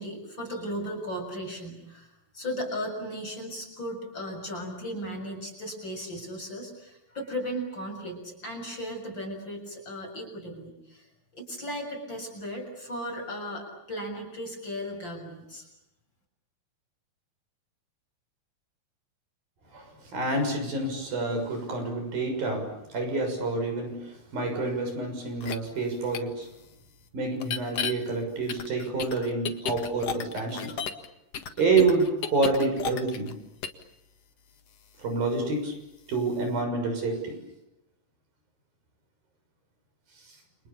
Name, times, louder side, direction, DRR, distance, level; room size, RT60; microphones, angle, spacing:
voice 1, 0.0-11.1 11.4-15.7, equal, 30° left, 3 dB, 7.5 m, -36 dB
voice 2, 19.7-26.5 27.1-30.7 31.6-33.3 35.0-35.7 36.1-37.4, right 3 dB, 65° right, 5 dB, 8.2 m, -28 dB
sound 1, 25.4-25.5 26.1-26.2 27.4-27.9 28.5-31.1 31.3-33.3 33.6-33.8, left 7 dB, 50° left, 2.4 m, -33 dB
30.0 x 28.0 x 7.1 m, 0.89 s
omnidirectional pair, 4.3 m